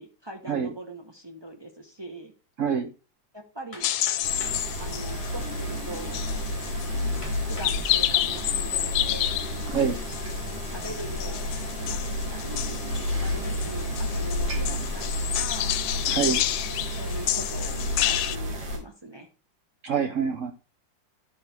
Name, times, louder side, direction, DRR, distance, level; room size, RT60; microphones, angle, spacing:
voice 1, 0.0-2.3 3.3-3.9 4.8-6.3 7.5-9.4 10.5-12.8 13.1-15.8 17.0-19.3, right 1 dB, 35° right, 1 dB, 0.4 m, -41 dB
voice 2, 2.6-2.9 9.7-10.0 16.1-16.4 19.8-20.5, right 7 dB, 65° right, 7 dB, 0.7 m, -26 dB
Hammer, 3.7-4.7 5.6-5.7 6.3-6.4 7.2-7.8 8.4-8.8, left 3 dB, 30° left, 1.3 m, -44 dB
sound 1, 3.8-18.4, left 13 dB, 85° left, 1.3 m, -30 dB
sound 2, 4.2-18.8, left 1 dB, 90° right, 3.1 m, -31 dB
11.5 x 4.5 x 3.3 m, 0.32 s
omnidirectional pair, 2.0 m